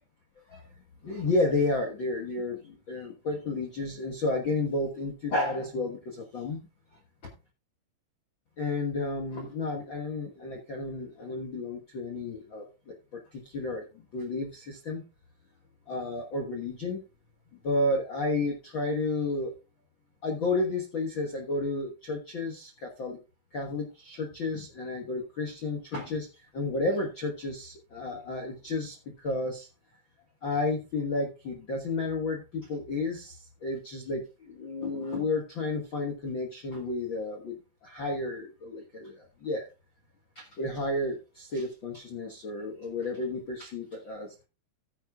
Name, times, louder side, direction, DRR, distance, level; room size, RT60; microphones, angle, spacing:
voice 1, 1.0-6.6 8.6-12.9 13.3-15.0 15.9-17.0 17.6-19.5 20.2-23.2 23.5-29.7 30.4-39.6 40.3-44.4, left 2 dB, 80° left, 1 dB, 1.0 m, -32 dB
14.5 x 9.8 x 2.4 m, 0.30 s
omnidirectional pair, 4.5 m